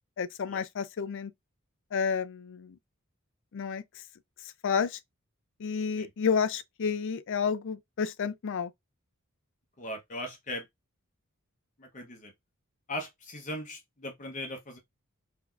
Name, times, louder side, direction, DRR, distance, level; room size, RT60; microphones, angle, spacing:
voice 1, 0.2-1.3 1.9-2.8 3.5-3.8 4.6-5.0 5.6-8.7, left 6 dB, 60° left, 0.4 m, -30 dB
voice 2, 9.8-10.7 11.8-12.3 12.9-14.8, left 1 dB, 35° left, 0.8 m, -39 dB
3.9 x 2.8 x 2.3 m
head